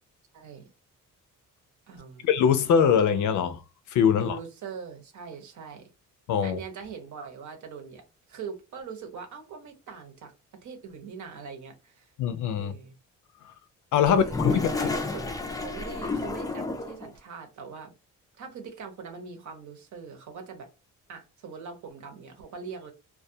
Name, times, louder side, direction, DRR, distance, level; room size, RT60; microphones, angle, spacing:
voice 1, 0.3-0.7 1.9-2.3 4.1-5.9 6.4-8.0 8.3-10.3 10.6-12.1 12.6-12.9 14.1-17.9 18.4-20.7 21.1-22.9, right 5 dB, 65° right, 0.9 m, -42 dB
voice 2, 2.2-3.6 3.9-4.4 6.3-6.6 12.2-12.7 13.9-14.7, left 7 dB, 65° left, 0.5 m, -22 dB
Toilet flush, 14.0-17.1, left 3 dB, 10° left, 0.3 m, -30 dB
2.3 x 2.2 x 2.6 m
cardioid pair, 105°, 32 cm